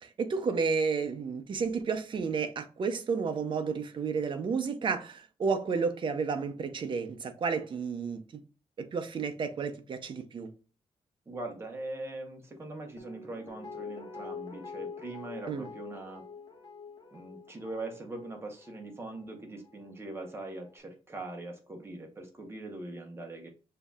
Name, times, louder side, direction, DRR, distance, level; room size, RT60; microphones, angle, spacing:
voice 1, 0.0-8.2 8.8-10.5 15.5-15.7, right 5 dB, 45° right, 0.6 m, -31 dB
voice 2, 11.3-16.2 17.1-23.5, right 2 dB, 20° right, 1.1 m, -41 dB
Guitar, 13.0-20.0 20.3-20.4, left 5 dB, 40° left, 0.9 m, -46 dB
6.6 x 2.7 x 2.4 m
wide cardioid pair, 155°, 11 cm